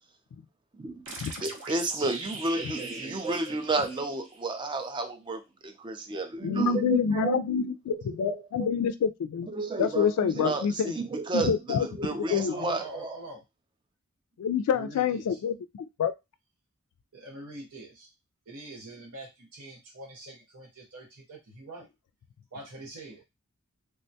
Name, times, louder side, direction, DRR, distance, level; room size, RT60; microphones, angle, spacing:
sound 1, 1.1-4.5, right 3 dB, 60° right, 0.7 m, -41 dB
voice 1, 1.4-8.7 9.5-13.2, right 3 dB, 20° right, 0.3 m, -31 dB
voice 2, 2.7-3.6 3.9-4.0 12.5-13.4 14.7-15.4 17.1-18.1 18.5-21.9 22.5-23.2, right 1 dB, 90° right, 0.8 m, -45 dB
voice 3, 6.4-9.5 9.8-10.9 11.3-12.7 14.4-15.5 16.0-16.1, left 8 dB, 90° left, 0.3 m, -27 dB
3.5 x 2.2 x 2.7 m
head